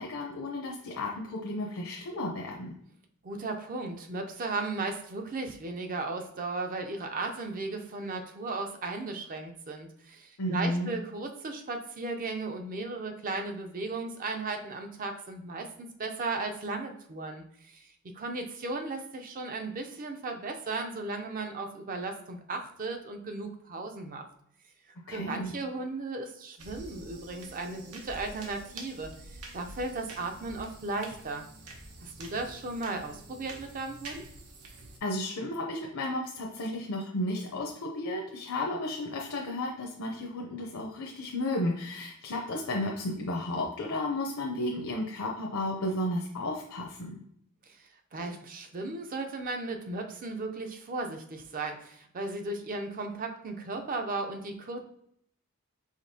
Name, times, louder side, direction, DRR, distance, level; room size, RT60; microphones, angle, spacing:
voice 1, 0.0-2.8 10.4-10.9 25.1-25.5 35.0-47.2, left 1 dB, 65° left, 0 dB, 0.6 m, -33 dB
voice 2, 3.2-24.3 25.1-31.4 32.0-34.3 47.7-54.8, right 3 dB, 40° right, 5 dB, 0.5 m, -36 dB
sound 1, 26.6-35.0, right 2 dB, 85° right, 0.9 m, -47 dB
5.0 x 3.5 x 2.7 m, 0.70 s
head